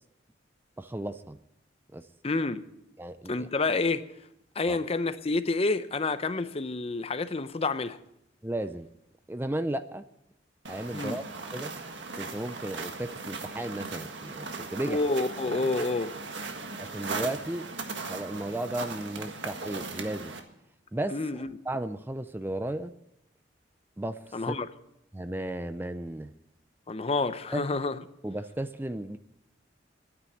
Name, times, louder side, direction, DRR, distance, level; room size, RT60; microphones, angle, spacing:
voice 1, 0.8-1.4 1.9-2.1 3.0-3.5 4.7-4.8 8.4-8.9 9.3-10.0 10.7-11.2 11.5-11.7 12.2-15.0 16.8-17.6 18.1-20.4 20.9-22.9 24.0-24.6 25.1-26.3 27.5-27.7 28.2-29.2, right 1 dB, 10° right, 0.4 m, -34 dB
voice 2, 2.2-2.6 3.3-4.1 4.6-8.0 10.9-11.2 14.9-16.1 21.1-21.5 24.3-24.7 26.9-28.0, left 3 dB, 30° left, 0.6 m, -28 dB
sound 1, 10.6-20.4, right 3 dB, 75° right, 1.7 m, -38 dB
12.0 x 9.9 x 8.5 m
head